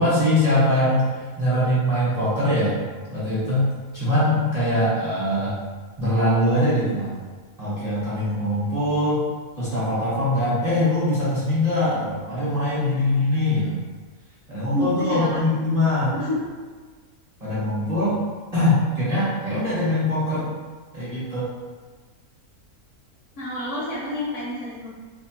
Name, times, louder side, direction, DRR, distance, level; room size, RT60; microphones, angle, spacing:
voice 1, 0.0-2.8 3.1-5.6 6.0-7.1 7.6-9.2 9.6-13.8 14.5-16.1 17.4-18.2 18.5-20.5 20.9-21.5, left 1 dB, 35° right, -11 dB, 0.8 m, -22 dB
voice 2, 14.7-15.3 16.1-16.6 23.4-24.9, left 1 dB, 65° left, -6 dB, 0.8 m, -28 dB
2.8 x 2.0 x 2.8 m, 1.5 s
omnidirectional pair, 1.6 m